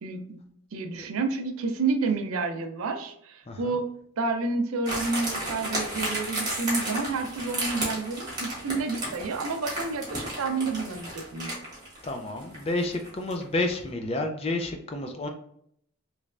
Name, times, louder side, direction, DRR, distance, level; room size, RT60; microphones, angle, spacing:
voice 1, 0.0-0.4 0.7-3.9 4.2-11.5, right 4 dB, 70° right, 6 dB, 0.5 m, -30 dB
sound 1, 4.9-13.5 13.7-13.8, right 1 dB, 20° right, 1.2 m, -33 dB
voice 2, 12.0-15.3, left 2 dB, 25° left, 4 dB, 0.4 m, -30 dB
3.2 x 3.1 x 2.4 m, 0.70 s
head